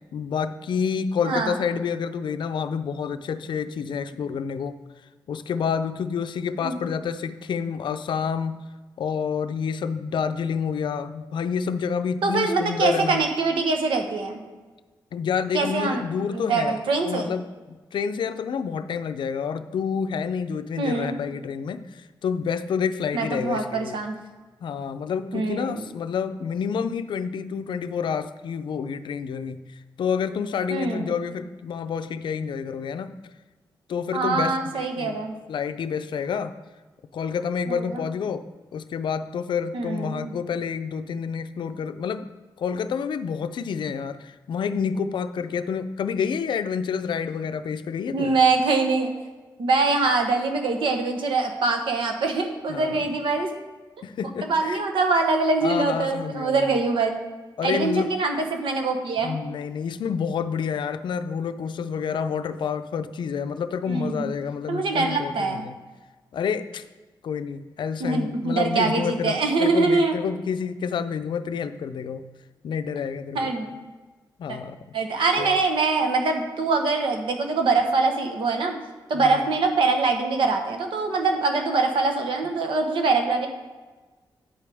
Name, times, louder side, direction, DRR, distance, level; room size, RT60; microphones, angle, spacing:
voice 1, 0.1-4.8 5.3-8.6 9.0-13.2 15.1-16.7 17.0-17.4 17.7-24.0 24.6-33.1 33.9-35.2 35.5-36.5 37.1-38.4 38.7-42.3 42.6-48.4 52.7-53.1 54.0-54.8 55.6-56.7 57.6-58.1 59.2-65.8 66.3-66.8 67.2-72.2 72.6-73.5 74.4-74.8 75.4-75.6 79.2-79.5, left 6 dB, 70° left, 10 dB, 0.5 m, -28 dB
voice 2, 1.2-1.6 6.6-6.9 12.2-14.4 15.5-16.0 16.3-17.3 20.8-21.1 23.1-24.2 25.3-25.9 30.7-31.1 34.1-35.3 37.7-38.0 39.7-40.3 48.1-49.1 49.6-53.5 54.4-57.1 57.6-59.3 63.9-64.3 64.7-65.7 68.0-70.1 73.3-73.7 74.5-74.6 74.9-78.8 79.1-83.5, right 3 dB, 85° right, 4 dB, 1.1 m, -24 dB
9.1 x 8.3 x 3.5 m, 1.3 s
wide cardioid pair, 145°, 8 cm